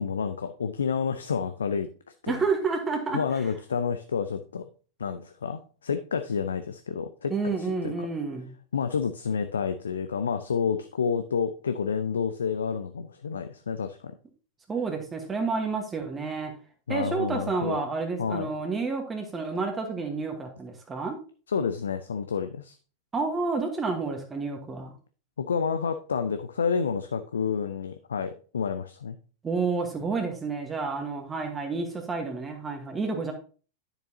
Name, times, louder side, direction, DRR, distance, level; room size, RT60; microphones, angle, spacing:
voice 1, 0.0-1.9 2.2-2.4 3.1-4.7 5.0-7.3 7.6-7.9 8.7-14.1 16.9-17.8 18.2-18.5 21.5-22.8 25.4-29.2, left 6 dB, 70° left, 9 dB, 0.5 m, -29 dB
voice 2, 2.3-3.4 7.3-8.5 14.7-16.5 16.9-21.2 23.1-24.9 29.4-33.3, right 4 dB, 15° right, 3 dB, 1.3 m, -30 dB
10.0 x 6.8 x 2.8 m, 0.38 s
figure-of-eight pair, 90°, 0 cm